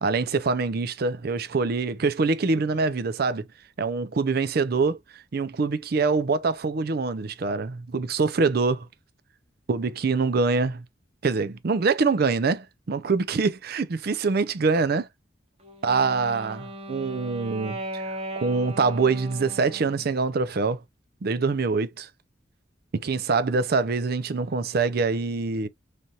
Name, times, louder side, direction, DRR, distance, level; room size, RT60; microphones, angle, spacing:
voice 1, 0.0-3.4 3.8-5.0 5.3-8.9 9.7-10.8 11.2-15.1 15.8-20.8 21.2-22.1 22.9-25.7, right 4 dB, 50° right, 0.5 m, -25 dB
Wind instrument woodwind instrument, 15.6-20.2, right 1 dB, 30° right, 0.9 m, -38 dB
3.3 x 2.7 x 2.4 m
head